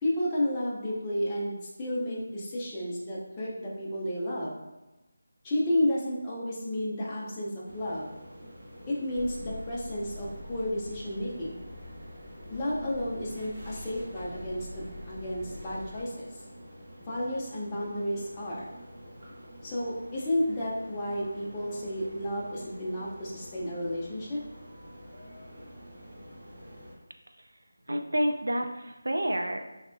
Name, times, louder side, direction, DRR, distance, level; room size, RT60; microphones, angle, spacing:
voice 1, 0.0-4.6 5.4-8.1 8.9-11.7 12.5-16.3 17.1-18.7 19.6-24.4, left 1 dB, 15° left, -7 dB, 0.4 m, -32 dB
sound 1, 7.6-27.0, equal, 40° right, 0.8 m, -48 dB
sound 2, 9.1-16.0, equal, 10° right, 1.3 m, -45 dB
voice 2, 27.9-29.6, equal, 75° right, 5 dB, 0.3 m, -29 dB
3.2 x 2.0 x 2.5 m, 1.0 s
figure-of-eight pair, 165°, 0 cm